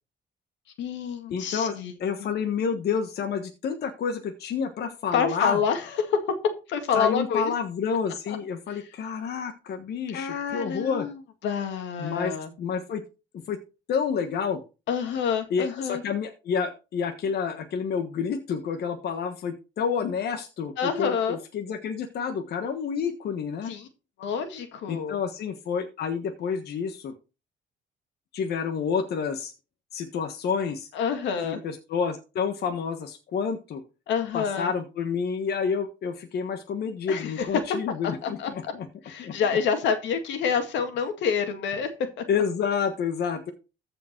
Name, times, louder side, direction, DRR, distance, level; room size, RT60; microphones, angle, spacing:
voice 1, 0.8-1.9 2.2-2.3 5.1-6.4 6.7-7.5 8.3-8.4 8.7-8.8 10.1-12.5 14.9-16.0 20.8-21.4 23.7-23.9 24.2-25.2 30.9-31.6 34.1-34.7 37.1-37.5 38.0-38.7 39.0-41.9, left 6 dB, 85° left, 7 dB, 2.0 m, -28 dB
voice 2, 1.3-5.6 6.9-11.1 12.0-13.0 13.5-13.6 13.9-14.6 15.5-23.7 24.9-27.1 28.3-29.5 29.9-30.9 31.4-33.8 34.3-38.9 39.2-39.3 42.3-43.5, left 6 dB, 60° left, 6 dB, 1.4 m, -29 dB
14.0 x 5.1 x 4.5 m, 0.31 s
cardioid pair, 125°, 18 cm